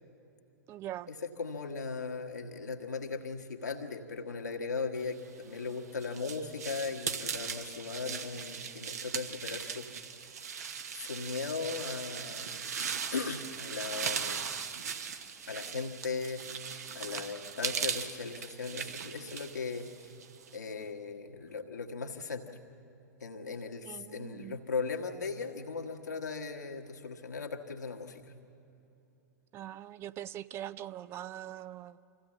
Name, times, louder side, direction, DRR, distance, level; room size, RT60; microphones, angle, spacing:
voice 1, 0.7-1.1 23.8-24.6 29.5-32.0, right 12 dB, 25° right, 16 dB, 0.4 m, -42 dB
voice 2, 1.4-9.9 10.9-12.7 13.1-14.5 15.5-16.4 16.9-20.1 20.5-22.6 23.2-28.2, left 4 dB, 80° left, 3 dB, 1.5 m, -38 dB
sound 1, 5.4-20.6, right 7 dB, 65° right, 1.2 m, -39 dB
25.0 x 16.0 x 7.4 m, 2.9 s
figure-of-eight pair, 100°, 9 cm